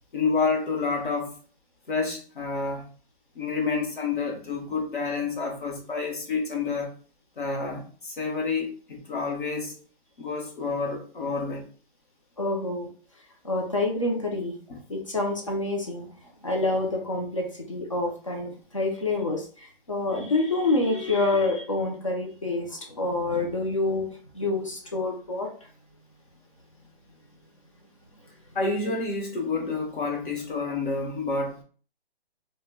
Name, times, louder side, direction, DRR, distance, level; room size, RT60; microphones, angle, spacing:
voice 1, 0.1-1.3 1.9-2.9 3.3-6.9 7.4-9.7 10.2-11.7 14.7-14.8 28.5-31.6, left 4 dB, 55° left, 0.9 m, -29 dB
voice 2, 12.4-12.9 13.4-14.6 14.9-16.1 16.4-25.5, left 2 dB, 35° left, 0.4 m, -27 dB
2.1 x 2.1 x 3.3 m
hypercardioid pair, 175°, 30 cm